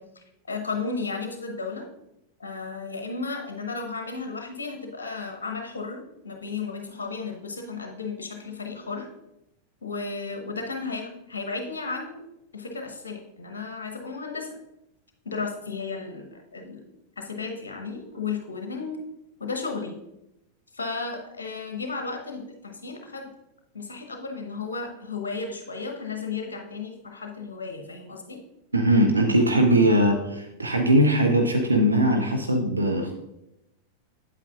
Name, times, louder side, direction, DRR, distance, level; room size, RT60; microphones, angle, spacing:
voice 1, 0.0-1.9 2.4-9.1 9.8-12.2 12.5-14.5 15.2-16.8 17.2-19.0 19.4-20.0 20.7-23.3 23.7-28.4, left 4 dB, 70° left, 4 dB, 0.9 m, -34 dB
voice 2, 28.7-33.1, right 1 dB, 80° right, 4 dB, 0.7 m, -20 dB
8.5 x 8.3 x 2.4 m, 0.87 s
figure-of-eight pair, 90°, 0 cm